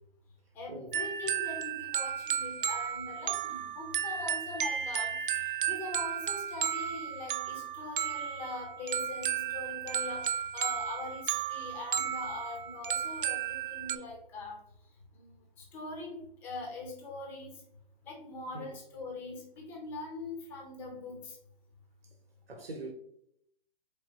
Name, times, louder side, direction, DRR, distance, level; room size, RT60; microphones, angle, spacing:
voice 1, 0.5-14.6 15.2-17.5 18.0-21.4, left 2 dB, 5° left, 0.4 m, -42 dB
sound 1, 0.9-14.0, right 9 dB, 65° right, 0.5 m, -34 dB
voice 2, 22.5-22.9, right 2 dB, 90° right, 1.0 m, -42 dB
4.3 x 3.3 x 2.8 m
hypercardioid pair, 145°, 29 cm